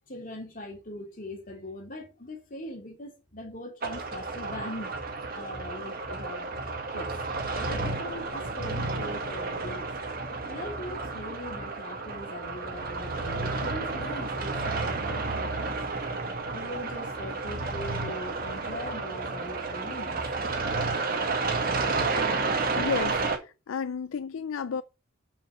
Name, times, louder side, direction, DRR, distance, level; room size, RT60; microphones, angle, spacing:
voice 1, 0.1-4.9 5.3-6.6 6.9-7.2 7.5-9.9 10.5-15.8 16.5-20.2, left 1 dB, 40° left, 2.9 m, -41 dB
sound 1, 3.8-23.4, right 3 dB, 50° right, 1.9 m, -31 dB
voice 2, 22.7-24.8, left 6 dB, 85° left, 0.4 m, -32 dB
7.0 x 5.8 x 7.4 m
head